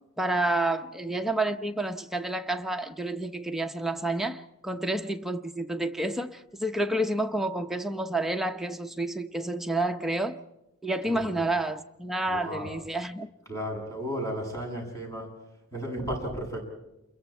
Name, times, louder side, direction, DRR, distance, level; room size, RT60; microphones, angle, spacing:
voice 1, 0.2-10.4 10.8-13.3, right 1 dB, ahead, 0.9 m, -29 dB
voice 2, 11.1-11.4 12.3-12.7 13.5-15.3 15.7-16.6, equal, 15° left, 7.9 m, -34 dB
29.5 x 22.0 x 4.5 m
head